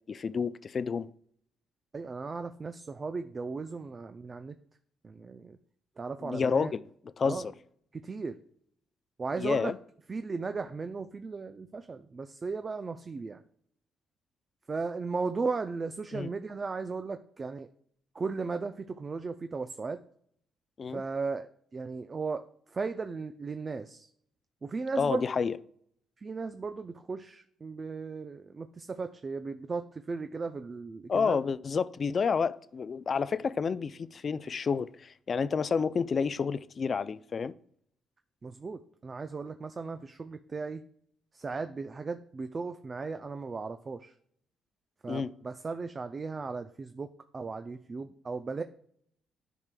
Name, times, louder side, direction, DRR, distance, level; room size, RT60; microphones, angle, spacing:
voice 1, 0.1-1.1 6.2-6.8 7.2-7.5 9.4-9.8 16.1-16.3 20.8-21.0 25.0-25.6 31.1-37.5 45.1-45.3, left 5 dB, 45° left, 0.3 m, -29 dB
voice 2, 1.9-4.6 5.0-5.6 6.0-6.7 7.2-7.4 7.9-8.4 9.2-9.7 10.1-13.4 14.7-17.7 18.1-20.0 20.9-24.1 24.6-25.2 26.2-31.4 38.4-40.8 41.3-44.1 45.0-48.6, right 4 dB, 35° right, 0.4 m, -36 dB
10.5 x 4.7 x 2.2 m
cardioid pair, 90°, 0 cm